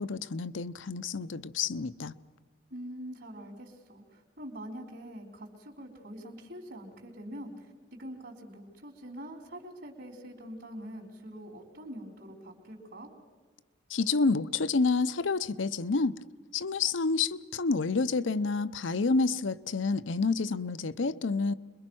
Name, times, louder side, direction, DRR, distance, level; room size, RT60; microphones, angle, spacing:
voice 1, 0.0-2.1 13.9-16.1 16.5-21.5, left 4 dB, 80° left, 0.7 m, -29 dB
voice 2, 2.7-7.7 8.0-13.1, equal, 65° right, 3.7 m, -44 dB
26.5 x 22.0 x 6.2 m
head